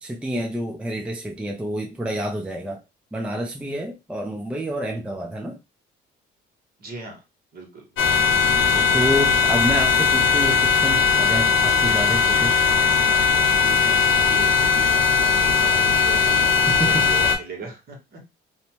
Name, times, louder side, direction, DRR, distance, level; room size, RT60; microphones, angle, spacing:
voice 1, 0.0-2.8 3.1-5.6 8.7-12.6 16.7-17.1, right 1 dB, 5° right, 0.5 m, -28 dB
voice 2, 6.8-7.2 7.5-8.0 13.4-18.2, right 3 dB, 50° right, 1.2 m, -38 dB
sound 1, 8.0-17.4, left 5 dB, 70° left, 0.7 m, -19 dB
2.7 x 2.1 x 3.0 m
cardioid pair, 95°, 21 cm